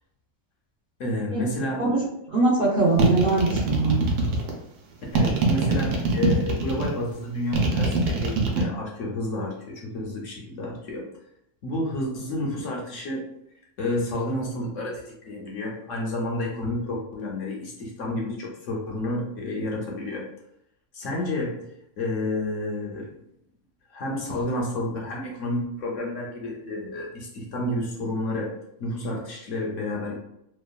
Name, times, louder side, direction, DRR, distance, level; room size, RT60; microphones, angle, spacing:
voice 1, 1.0-1.8 5.1-11.1 11.6-13.3 13.8-20.3 20.9-21.6 22.0-23.1 23.9-30.2, left 1 dB, 65° left, -2 dB, 0.9 m, -30 dB
voice 2, 1.8-4.0, right 3 dB, 55° right, -7 dB, 0.6 m, -22 dB
sound 1, 3.0-4.5 5.1-6.9 7.5-8.6, right 4 dB, 85° right, 1.2 m, -23 dB
3.0 x 2.2 x 2.3 m, 0.78 s
omnidirectional pair, 1.6 m